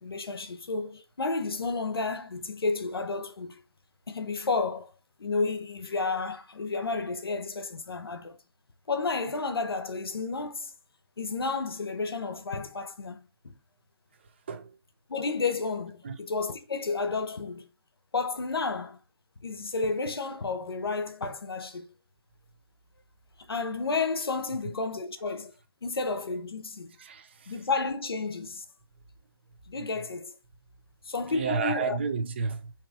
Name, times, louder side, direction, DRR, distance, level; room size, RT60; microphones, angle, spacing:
voice 1, 0.0-3.6 4.1-4.9 5.2-8.4 8.9-10.7 11.2-13.5 15.1-17.7 18.1-19.0 19.4-21.9 23.5-25.5 25.8-26.9 27.5-28.6 29.7-30.3 31.0-32.0, left 4 dB, 75° left, 0.8 m, -31 dB
voice 2, 27.0-27.5 31.3-32.7, right 5 dB, 30° right, 0.6 m, -31 dB
3.6 x 3.0 x 4.8 m
figure-of-eight pair, 165°, 13 cm